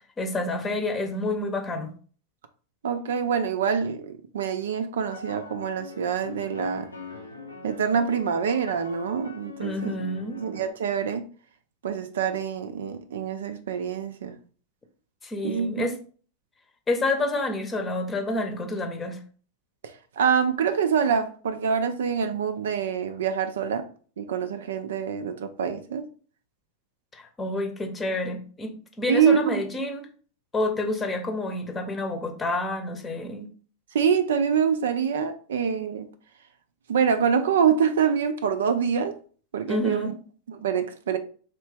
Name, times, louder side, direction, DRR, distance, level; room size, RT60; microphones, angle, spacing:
voice 1, 0.2-1.9 9.6-10.5 15.2-15.9 16.9-19.2 27.1-30.1 30.5-33.5 39.7-40.2, left 2 dB, 20° left, 0.8 m, -29 dB
voice 2, 2.8-6.9 7.6-10.0 10.4-11.2 11.8-14.4 15.4-15.9 19.8-23.9 24.2-26.0 29.1-29.6 33.9-36.1 36.9-39.2 39.5-40.1 40.5-41.2, right 7 dB, 60° right, 0.4 m, -25 dB
sound 1, 5.0-10.7, left 3 dB, 80° left, 0.7 m, -42 dB
4.2 x 3.1 x 3.3 m
figure-of-eight pair, 90°, 0 cm